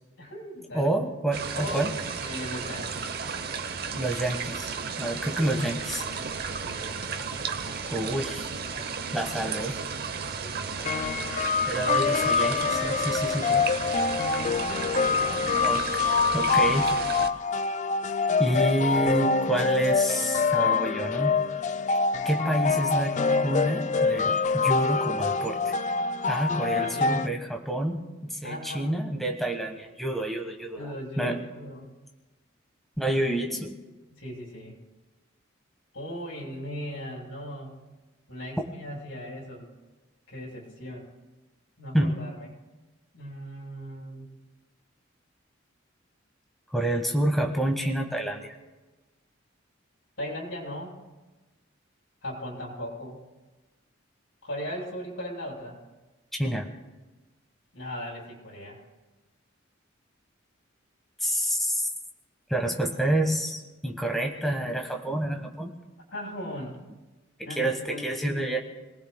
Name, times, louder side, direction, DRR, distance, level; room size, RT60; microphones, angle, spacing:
voice 1, 0.2-0.9 1.5-3.0 6.6-7.1 10.4-10.9 15.2-15.6 26.8-27.2 28.4-28.9 30.7-31.9 34.1-34.7 35.9-37.7 38.3-39.7 40.3-41.1 41.8-42.5 43.1-44.3 50.2-51.0 52.2-53.2 54.4-55.8 57.7-58.8 66.1-66.8 67.4-68.6, equal, 80° left, -3 dB, 6.6 m, -38 dB
voice 2, 0.7-1.9 4.0-4.7 5.0-6.0 7.9-8.5 9.1-9.8 11.7-13.6 15.6-16.9 18.4-21.4 22.2-23.2 23.4-25.7 26.3-31.4 33.0-33.7 41.9-42.2 46.7-48.5 56.4-56.7 61.2-61.9 62.5-65.7 67.4-68.6, right 1 dB, ahead, 2 dB, 1.2 m, -28 dB
sound 1, 1.3-17.3, right 5 dB, 50° right, 0.8 m, -34 dB
sound 2, 10.9-27.3, left 4 dB, 35° left, 0.4 m, -25 dB
29.5 x 19.0 x 2.2 m, 1.2 s
head